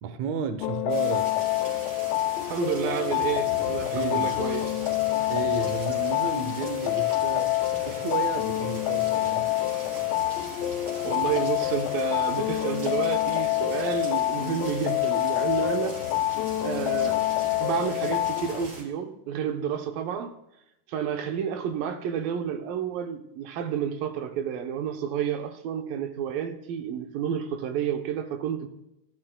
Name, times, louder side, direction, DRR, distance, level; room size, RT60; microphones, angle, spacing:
voice 1, 0.0-1.3 3.9-4.4 5.3-7.6 7.9-9.5, right 6 dB, 65° right, 2.1 m, -32 dB
sound 1, 0.6-18.7, left 16 dB, 90° left, 2.5 m, -27 dB
sound 2, 0.9-18.8, right 1 dB, 40° right, 5.4 m, -41 dB
voice 2, 2.4-4.8 11.0-16.0 16.6-17.2 17.6-20.4 20.9-28.7, right 8 dB, 80° right, 2.7 m, -30 dB
26.5 x 14.0 x 2.3 m
omnidirectional pair, 4.0 m